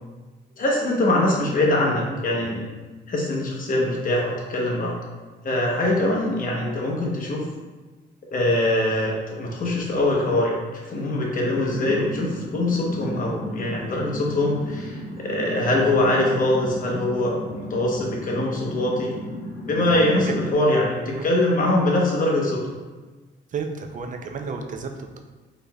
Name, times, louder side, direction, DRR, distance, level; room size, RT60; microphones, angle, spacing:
voice 1, 0.6-2.6 3.1-4.9 5.4-7.5 8.3-9.1 9.4-19.2 19.6-22.8, left 1 dB, 45° left, -2 dB, 0.9 m, -23 dB
sound 1, 11.4-20.5, equal, 15° left, 1.0 m, -34 dB
voice 2, 19.8-20.4 21.1-21.3 21.5-21.8 23.5-25.2, right 5 dB, 40° right, 4 dB, 0.4 m, -33 dB
3.9 x 3.2 x 2.3 m, 1.3 s
cardioid pair, 90°, 20 cm